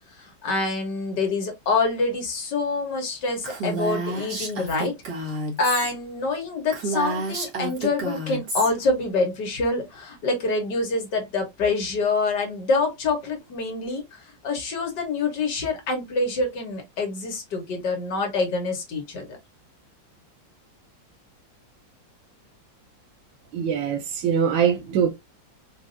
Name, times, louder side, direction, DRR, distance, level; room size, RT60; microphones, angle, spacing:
voice 1, 0.2-5.3 5.6-19.4, left 3 dB, 70° left, 1.8 m, -26 dB
Female speech woman speaking, 3.4-5.9 6.3-6.4 6.7-8.7, right 2 dB, 60° right, 2.0 m, -30 dB
voice 2, 23.5-25.1, right 8 dB, 85° right, 1.4 m, -22 dB
4.7 x 2.6 x 2.5 m
omnidirectional pair, 2.0 m